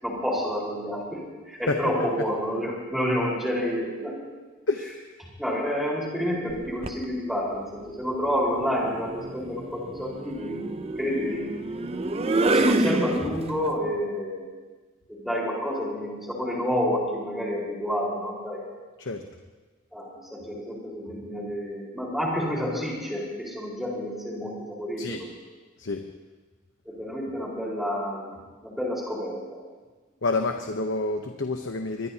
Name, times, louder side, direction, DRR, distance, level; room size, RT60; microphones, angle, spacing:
voice 1, 0.0-4.2 5.4-11.7 12.3-14.5 15.1-18.7 19.9-25.3 26.8-29.6, equal, ahead, -4 dB, 4.7 m, -29 dB
sound 1, 6.5-7.0 8.4-13.7, right 2 dB, 30° right, 0.6 m, -28 dB
voice 2, 30.2-32.1, left 3 dB, 75° left, 5 dB, 0.9 m, -28 dB
23.5 x 21.5 x 2.9 m, 1.3 s
head